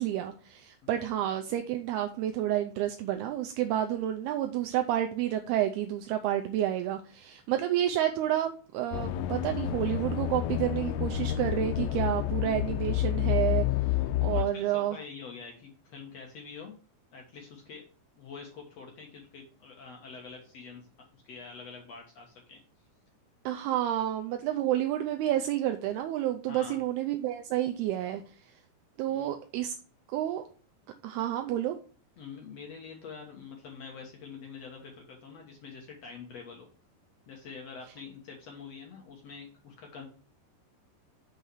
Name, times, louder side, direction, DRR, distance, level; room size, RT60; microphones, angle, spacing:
voice 1, 0.0-13.7 14.2-15.0 23.5-28.2 29.0-29.7 30.1-30.5 31.0-31.8, right 12 dB, 80° right, 5 dB, 2.4 m, -30 dB
sound 1, 8.9-14.4, left 13 dB, 90° left, 2.9 m, -29 dB
voice 2, 14.3-16.7 17.1-17.8 18.2-20.9 21.2-22.6 26.5-26.8 29.1-29.3 32.2-36.7 37.3-40.1, left 5 dB, 65° left, 1 dB, 1.7 m, -46 dB
6.7 x 5.6 x 4.6 m, 0.40 s
omnidirectional pair, 4.9 m